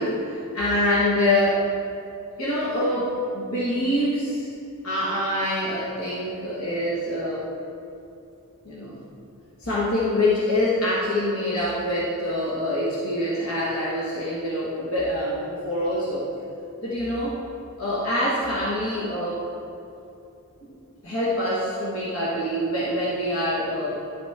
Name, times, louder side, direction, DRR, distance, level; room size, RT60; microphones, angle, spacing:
voice 1, 0.0-1.6 2.4-4.5 4.8-7.5 8.6-9.0 9.6-16.3 16.8-17.4 17.8-19.4 20.6-20.7 21.0-24.0, left 1 dB, 75° left, -7 dB, 1.4 m, -25 dB
10.5 x 6.0 x 3.6 m, 2.7 s
head